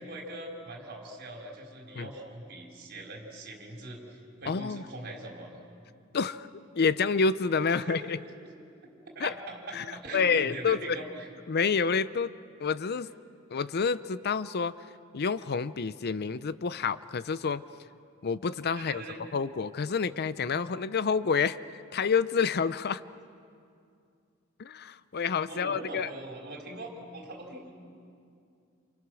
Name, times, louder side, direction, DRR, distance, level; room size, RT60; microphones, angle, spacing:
voice 1, 0.0-4.0 4.4-5.6 7.7-8.1 9.1-11.3 13.0-13.1 18.7-19.2 25.5-27.7, right 2 dB, 50° right, 0 dB, 4.6 m, -41 dB
voice 2, 4.5-4.9 6.1-6.5 6.7-8.2 9.2-9.3 9.7-11.0 11.5-12.3 12.6-13.1 13.5-14.7 15.1-17.6 18.2-19.0 19.3-23.0 24.6-26.1, left 5 dB, 50° left, 15 dB, 0.5 m, -28 dB
28.5 x 28.5 x 6.3 m, 2.4 s
head